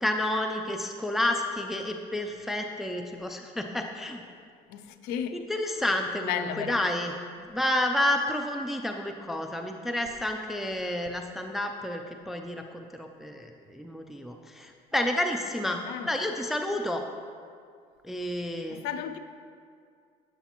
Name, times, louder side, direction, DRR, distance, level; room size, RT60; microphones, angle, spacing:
voice 1, 0.0-4.2 5.3-7.1 7.4-15.8 16.1-17.0 18.0-18.8, left 1 dB, ahead, 4 dB, 0.3 m, -30 dB
voice 2, 4.7-5.5 6.2-6.9 15.6-16.1 18.7-19.2, left 9 dB, 85° left, 10 dB, 0.4 m, -34 dB
7.9 x 6.8 x 2.9 m, 2.2 s
cardioid pair, 120°, 16 cm